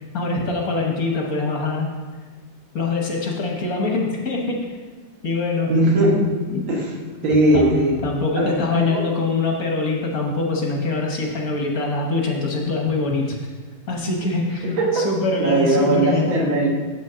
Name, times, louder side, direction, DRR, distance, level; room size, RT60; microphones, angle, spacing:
voice 1, 0.0-1.9 2.7-4.7 5.2-5.7 6.5-6.7 7.5-7.8 8.0-13.4 13.9-16.3, left 3 dB, 50° left, 0 dB, 1.4 m, -24 dB
voice 2, 5.7-6.2 6.7-6.9 7.2-8.0 8.4-9.0 14.6-15.1 15.4-16.7, right 1 dB, 80° right, -1 dB, 2.2 m, -19 dB
sound 1, 7.3-8.2 12.7-13.5, left 5 dB, 80° left, 1.3 m, -34 dB
7.9 x 6.2 x 5.6 m, 1.4 s
omnidirectional pair, 2.1 m